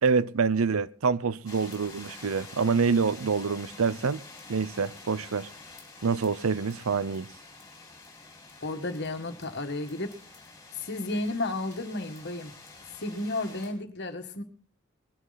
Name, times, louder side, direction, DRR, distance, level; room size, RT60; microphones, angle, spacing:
voice 1, 0.0-4.2 4.5-5.5 6.0-7.3, right 5 dB, 85° right, 0.7 m, -26 dB
sound 1, 1.5-13.7, left 3 dB, 15° left, 4.4 m, -48 dB
voice 2, 8.6-10.1 10.8-12.5 13.0-14.4, left 2 dB, 55° left, 1.8 m, -32 dB
20.0 x 11.0 x 4.1 m
head